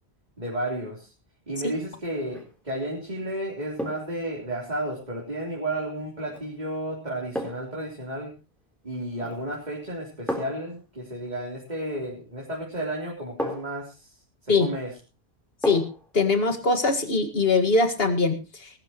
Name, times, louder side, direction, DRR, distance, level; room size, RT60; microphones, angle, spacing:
voice 1, 0.4-1.1 1.5-8.4 8.8-14.2 14.4-14.9, right 1 dB, 40° right, -3 dB, 3.8 m, -32 dB
sound 1, 2.2-2.6 3.8-4.2 6.3-6.5 7.3-7.8 9.1-9.5 10.3-10.7 12.4-12.5 13.4-13.9 15.6-16.1 16.5-16.6, left 1 dB, ahead, 3.8 m, -33 dB
voice 2, 16.1-18.7, left 3 dB, 60° left, 7 dB, 2.1 m, -22 dB
20.0 x 13.0 x 3.0 m, 0.30 s
omnidirectional pair, 1.1 m